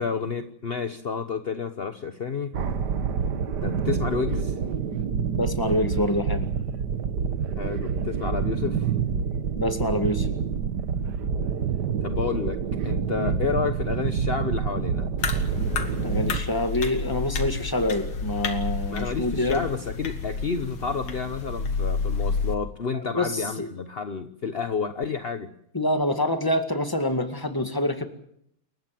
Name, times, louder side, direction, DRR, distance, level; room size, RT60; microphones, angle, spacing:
voice 1, 0.0-2.6 3.6-4.6 7.6-8.9 12.0-12.6 12.8-15.1 18.9-25.5, left 5 dB, 40° left, 8 dB, 0.8 m, -30 dB
sound 1, 2.5-16.4, right 6 dB, 55° right, 1.7 m, -27 dB
voice 2, 5.4-6.5 9.6-10.3 13.2-13.3 16.0-19.6 23.1-23.7 25.7-28.1, left 1 dB, 10° left, 7 dB, 1.8 m, -26 dB
sound 2, 15.2-22.6, left 4 dB, 70° left, 2.6 m, -30 dB
28.5 x 15.5 x 7.6 m, 0.70 s
omnidirectional pair, 2.4 m